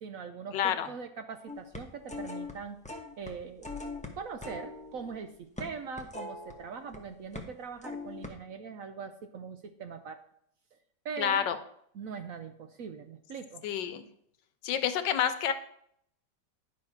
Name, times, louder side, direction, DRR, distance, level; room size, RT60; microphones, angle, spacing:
voice 1, 0.0-2.8 3.2-3.7 4.2-10.2 10.7-10.8 11.0-11.5 11.9-13.6, right 6 dB, 65° right, 8 dB, 0.9 m, -41 dB
voice 2, 0.5-0.9 11.2-11.6 13.6-14.1 14.6-15.5, left 9 dB, 85° left, 10 dB, 1.5 m, -28 dB
sound 1, 1.5-2.5 2.8-3.3 3.6-7.0 7.3-7.5 7.8-8.3, left 3 dB, 5° left, 0.7 m, -41 dB
10.5 x 4.9 x 5.9 m, 0.69 s
omnidirectional pair, 1.9 m